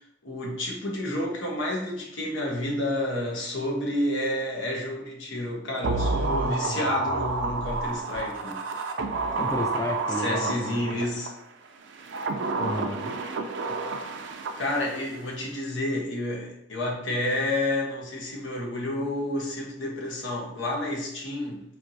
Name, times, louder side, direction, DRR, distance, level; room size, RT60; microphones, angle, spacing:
voice 1, 0.0-8.6 10.1-11.3 14.6-21.6, left 1 dB, 90° left, -2 dB, 1.1 m, -30 dB
sound 1, 5.8-11.3 11.9-15.2 15.4-15.5, right 3 dB, 70° right, 0.4 m, -30 dB
voice 2, 9.3-10.8 12.6-13.1, left 1 dB, 15° left, 2 dB, 0.3 m, -32 dB
4.5 x 3.0 x 2.7 m, 0.79 s
head